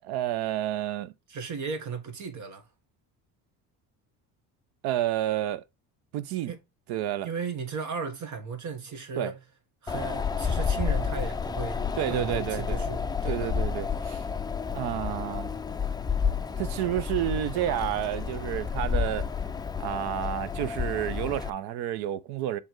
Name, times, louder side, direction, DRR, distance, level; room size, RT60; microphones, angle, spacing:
voice 1, 0.0-1.1 4.8-5.6 6.1-6.5 6.9-7.3 9.2-9.3 12.0-12.9 13.3-14.2 14.7-15.5 16.6-19.3 19.8-22.6, right 12 dB, 85° right, 0.7 m, -30 dB
voice 2, 1.3-2.7 6.5-6.6 7.2-9.4 9.8-13.5, right 5 dB, 50° right, 1.6 m, -36 dB
Wind, 9.9-21.5, left 6 dB, 10° left, 0.4 m, -30 dB
6.6 x 3.6 x 4.5 m
cardioid pair, 115°, 38 cm